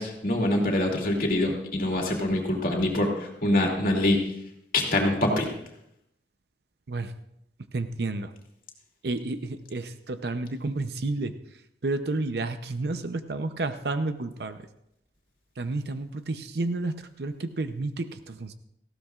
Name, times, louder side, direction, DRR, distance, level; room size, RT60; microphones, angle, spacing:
voice 1, 0.0-4.2 4.7-5.5, left 1 dB, 50° left, 0 dB, 2.6 m, -25 dB
voice 2, 7.7-8.3 9.0-14.7 15.6-18.5, right 2 dB, 70° right, 10 dB, 0.7 m, -31 dB
18.5 x 15.0 x 2.4 m, 0.78 s
head